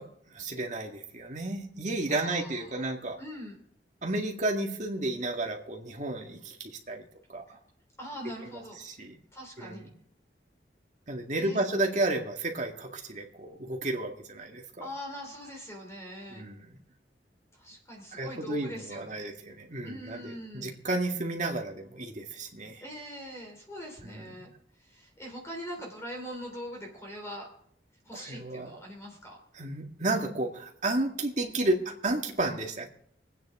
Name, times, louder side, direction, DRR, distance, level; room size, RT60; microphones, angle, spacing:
voice 1, 0.0-3.2 4.0-7.0 7.3-7.6 8.4-9.2 9.6-9.9 11.1-14.9 16.3-16.8 18.1-22.8 24.0-24.5 28.1-28.8 29.6-32.9, right 2 dB, 45° right, 2 dB, 2.0 m, -32 dB
voice 2, 2.1-2.9 3.2-3.6 7.5-7.6 8.0-8.8 9.3-9.9 11.4-11.6 14.8-16.5 17.5-19.3 19.8-20.8 22.8-24.5 24.8-27.5 28.0-29.4, equal, 15° left, 1 dB, 3.0 m, -42 dB
24.5 x 9.3 x 3.7 m, 0.67 s
head